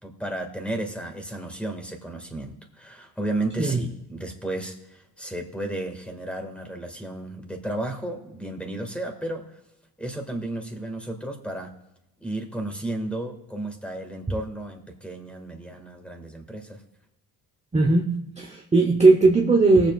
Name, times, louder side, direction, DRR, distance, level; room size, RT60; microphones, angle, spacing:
voice 1, 0.0-9.6 10.0-11.7 12.2-16.8, right 1 dB, 5° left, 4 dB, 1.9 m, -33 dB
voice 2, 17.7-18.1 18.4-19.9, right 3 dB, 15° right, 1 dB, 0.9 m, -18 dB
19.0 x 7.4 x 2.4 m, 0.86 s
cardioid pair, 100°, 39 cm